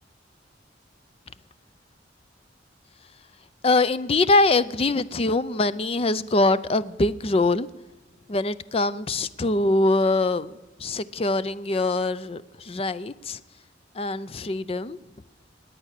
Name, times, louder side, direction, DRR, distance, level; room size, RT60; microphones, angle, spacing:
voice 1, 3.6-7.7 8.3-10.5 10.8-13.4 14.0-15.0, left 2 dB, 30° left, 16 dB, 0.5 m, -23 dB
20.0 x 8.7 x 6.6 m, 1.1 s
head